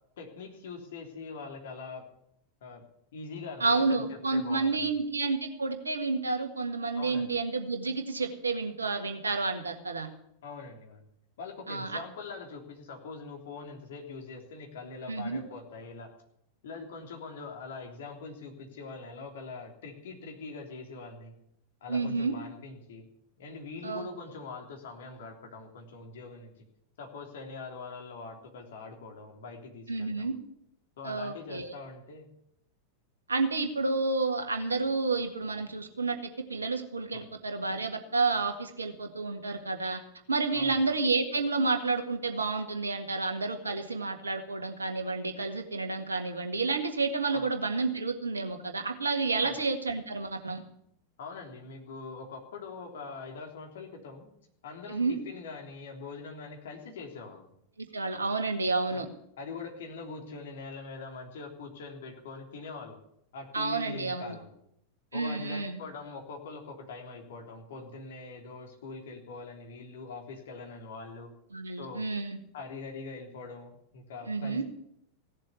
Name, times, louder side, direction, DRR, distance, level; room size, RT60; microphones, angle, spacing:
voice 1, 0.2-2.0 2.6-2.8 3.1-4.9 7.0-7.3 10.4-11.1 11.4-16.1 16.6-21.3 21.8-23.1 23.4-26.5 27.0-30.3 31.0-32.3 37.1-37.3 40.5-40.8 47.3-47.5 49.4-49.6 51.2-54.3 54.6-57.5 58.9-59.0 59.4-63.0 63.3-64.6 65.1-71.3 71.8-72.0 72.5-74.6, left 4 dB, 60° left, 2 dB, 3.3 m, -43 dB
voice 2, 3.6-10.1 11.7-12.0 15.1-15.4 21.9-22.4 23.8-24.1 29.9-30.3 31.0-31.7 33.3-40.0 40.3-50.6 54.9-55.2 57.9-59.1 63.5-64.4 65.1-65.8 71.5-72.4 74.3-74.6, right 3 dB, 75° right, 6 dB, 1.8 m, -30 dB
16.5 x 7.5 x 9.6 m, 0.73 s
figure-of-eight pair, 90°, 0 cm